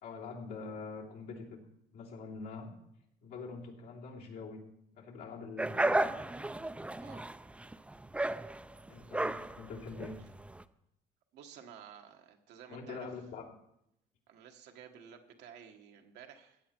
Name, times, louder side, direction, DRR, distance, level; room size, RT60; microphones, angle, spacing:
voice 1, 0.0-1.6 1.9-2.7 3.2-4.6 5.0-6.5 8.9-10.1 12.7-13.4, left 4 dB, 85° left, -3 dB, 2.9 m, -44 dB
sound 1, 5.6-10.6, right 2 dB, 5° right, 0.4 m, -34 dB
voice 2, 11.3-13.1 14.3-16.6, right 8 dB, 80° right, 4 dB, 1.5 m, -53 dB
15.5 x 8.6 x 4.5 m, 0.79 s
cardioid pair, 110°, 17 cm